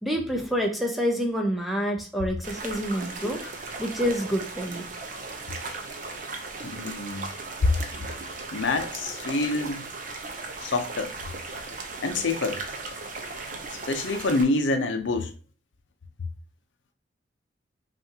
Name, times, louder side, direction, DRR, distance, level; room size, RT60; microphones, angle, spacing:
voice 1, 0.0-3.5 3.8-4.9 5.6-5.8, equal, ahead, 0.6 m, -28 dB
sound 1, 2.4-14.4, right 3 dB, 45° right, 0.7 m, -37 dB
voice 2, 6.6-7.3 7.6-8.1 8.5-9.9 10.6-11.1 12.0-12.7 13.5-15.3, left 3 dB, 80° left, 0.6 m, -27 dB
5.7 x 2.5 x 2.8 m
head